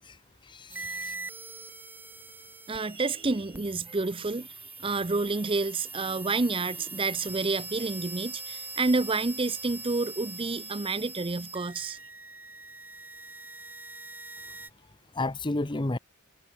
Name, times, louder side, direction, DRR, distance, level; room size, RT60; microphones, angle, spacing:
voice 1, 0.5-1.1 15.1-16.0, left 2 dB, 20° left, 0.8 m, -31 dB
sound 1, 0.7-14.7, right 3 dB, 10° right, 1.5 m, -42 dB
voice 2, 2.7-12.0, right 3 dB, 25° right, 0.6 m, -29 dB
head